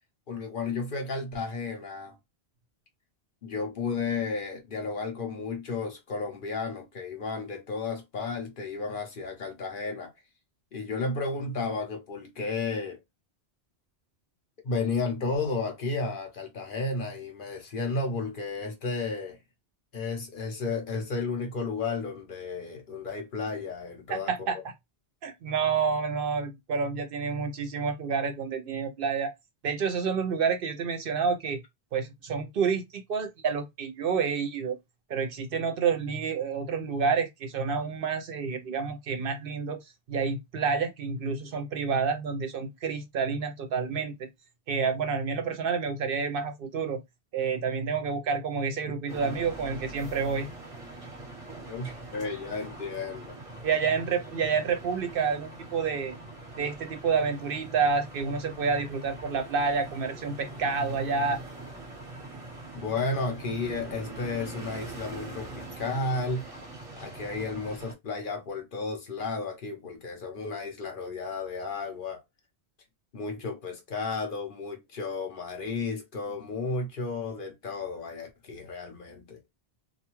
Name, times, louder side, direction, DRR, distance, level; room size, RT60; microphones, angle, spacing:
voice 1, 0.3-2.2 3.4-10.1 10.7-13.0 14.6-19.4 19.9-24.3 51.7-53.4 62.7-66.5 67.0-72.2 73.1-79.4, left 3 dB, 55° left, 0.8 m, -33 dB
voice 2, 24.1-24.6 25.2-29.3 29.6-31.6 31.9-34.8 35.1-39.8 40.1-44.1 44.7-47.0 47.3-50.5 53.6-56.2 56.6-61.4, right 5 dB, 65° right, 0.7 m, -29 dB
sound 1, 49.1-67.9, right 2 dB, 35° right, 0.9 m, -43 dB
2.4 x 2.2 x 2.9 m
omnidirectional pair, 1.1 m